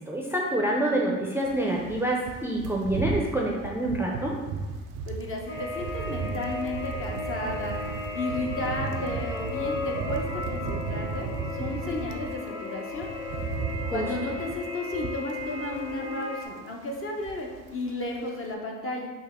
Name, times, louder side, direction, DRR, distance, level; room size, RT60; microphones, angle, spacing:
voice 1, 0.0-4.3 13.8-14.1, right 1 dB, 5° right, -2 dB, 0.6 m, -27 dB
sound 1, 1.4-12.3 12.7-16.1 16.4-16.6 16.9-17.8 18.0-18.2, right 5 dB, 65° right, 0.5 m, -35 dB
voice 2, 5.1-7.8 8.1-13.1 13.9-19.1, left 2 dB, 40° left, 0 dB, 0.9 m, -33 dB
sound 2, 5.5-16.4, left 2 dB, 85° left, 1.0 m, -35 dB
5.3 x 2.1 x 3.6 m, 1.3 s
supercardioid pair, 75°, 35 cm